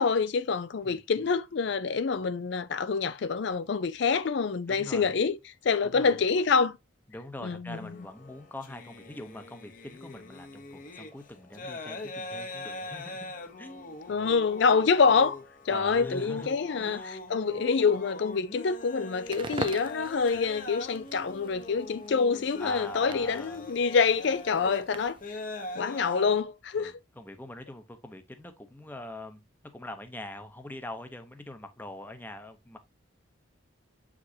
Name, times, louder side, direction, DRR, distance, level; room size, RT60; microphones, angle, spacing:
voice 1, 0.0-5.4 5.6-6.7 7.4-7.8 14.1-15.4 15.7-25.2 25.8-26.9, left 5 dB, 60° left, 0.4 m, -26 dB
voice 2, 0.8-1.3 4.7-5.2 5.8-6.2 7.1-14.3 15.7-17.2 22.6-23.7 26.8-29.4 29.7-32.8, left 1 dB, 10° left, 0.7 m, -44 dB
sound 1, 7.7-26.4, left 2 dB, 40° left, 0.9 m, -42 dB
Crackle, 19.2-25.3, right 4 dB, 25° right, 0.3 m, -43 dB
7.3 x 4.9 x 2.7 m
head